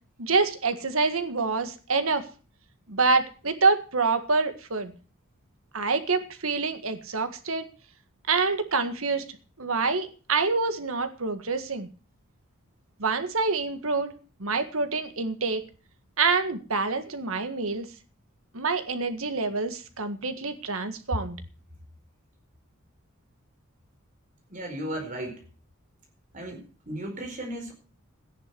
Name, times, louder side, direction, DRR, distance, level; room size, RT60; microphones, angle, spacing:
voice 1, 0.2-2.2 2.9-4.9 5.7-7.7 8.3-9.2 9.6-11.9 13.0-14.1 14.4-15.6 16.2-17.9 18.5-21.4, right 4 dB, 80° right, 9 dB, 1.7 m, -26 dB
voice 2, 24.5-25.4 26.3-27.7, right 1 dB, 40° right, 3 dB, 4.5 m, -35 dB
14.0 x 10.5 x 6.0 m, 0.37 s
head